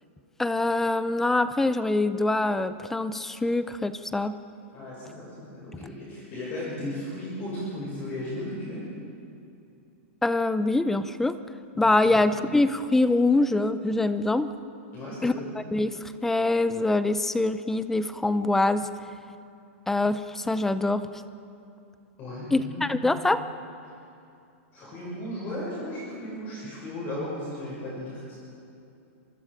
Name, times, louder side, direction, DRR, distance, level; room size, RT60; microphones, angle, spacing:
voice 1, 0.4-4.4 10.2-11.4 11.8-14.5 15.2-15.3 15.7-18.9 19.9-21.1 22.5-23.4, left 2 dB, 5° left, 13 dB, 0.6 m, -24 dB
voice 2, 4.7-8.9 11.7-12.3 14.9-15.4 22.2-23.2 24.7-28.3, left 1 dB, 25° left, -6 dB, 6.7 m, -36 dB
27.0 x 24.5 x 5.2 m, 2.6 s
hypercardioid pair, 160°, 7 cm